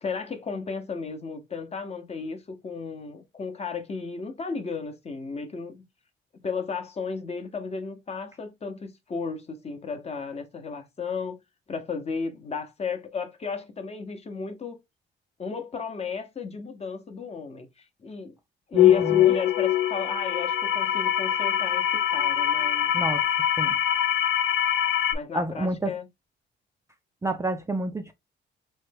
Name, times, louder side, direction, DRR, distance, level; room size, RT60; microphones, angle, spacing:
voice 1, 0.0-5.8 6.4-11.4 11.7-14.8 15.4-18.3 18.7-22.9 25.1-26.1, left 4 dB, 30° left, 0.7 m, -34 dB
voice 2, 18.7-19.2 22.9-23.2 23.6-23.8 25.3-25.9 27.2-28.1, right 1 dB, 15° right, 0.3 m, -29 dB
sound 1, 18.8-25.1, left 11 dB, 80° left, 0.4 m, -23 dB
3.1 x 2.2 x 3.2 m
cardioid pair, 90°, 20 cm